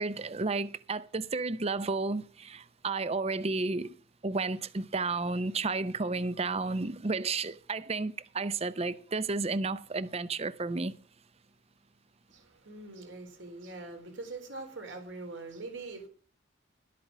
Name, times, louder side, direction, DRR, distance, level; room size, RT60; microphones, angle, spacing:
voice 1, 0.0-4.0 4.2-10.9, right 3 dB, 30° right, 0.6 m, -32 dB
voice 2, 12.3-16.1, right 3 dB, 70° right, 3.6 m, -43 dB
12.0 x 8.5 x 6.1 m
head